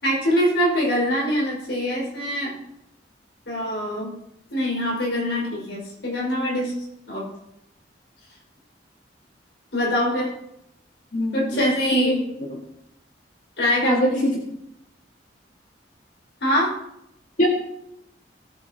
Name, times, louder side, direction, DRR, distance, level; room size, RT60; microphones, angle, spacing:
voice 1, 0.0-2.5 3.5-4.1 4.5-6.7 7.1-7.3 9.7-10.3 11.3-12.2 13.6-14.0 16.4-16.7, left 1 dB, 85° left, -4 dB, 5.1 m, -23 dB
voice 2, 11.1-12.1 12.5-12.6 13.8-14.4 17.4-17.5, equal, 50° left, -2 dB, 1.8 m, -23 dB
19.5 x 7.7 x 2.9 m, 0.80 s
head